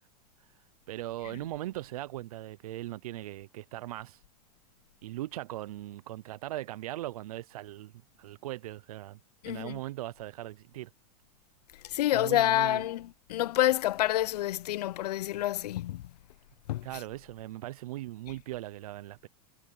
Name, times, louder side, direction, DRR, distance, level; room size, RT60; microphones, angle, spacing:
voice 1, 0.9-4.2 5.0-7.9 8.2-9.2 9.5-10.9 12.1-12.8 16.8-19.3, right 15 dB, 65° right, 0.5 m, -39 dB
voice 2, 9.4-9.8 11.8-16.0 16.7-16.9, left 14 dB, 75° left, 0.6 m, -28 dB
supercardioid pair, 180°, 20 cm